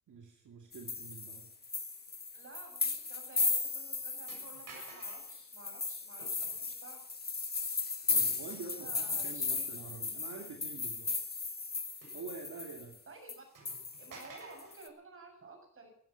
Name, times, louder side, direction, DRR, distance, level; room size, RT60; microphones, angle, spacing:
voice 1, 0.1-1.5 8.1-11.1 12.1-13.0, right 5 dB, 70° right, 2 dB, 2.6 m, -47 dB
sound 1, 0.7-12.9 13.3-13.4 13.7-14.9, left 4 dB, 30° left, 1.5 m, -36 dB
voice 2, 2.3-7.0 8.7-9.8 13.1-13.4 14.0-15.9, right 3 dB, 45° right, 2 dB, 7.2 m, -53 dB
sound 2, 2.8-3.0 3.4-3.5 4.3-5.4 6.2-6.6 8.5-9.3 9.8-9.9 12.0-12.8 13.1-13.2 13.5-14.8, right 3 dB, 90° right, 7.1 m, -54 dB
16.0 x 13.5 x 5.8 m, 0.67 s
wide cardioid pair, 130°, 31 cm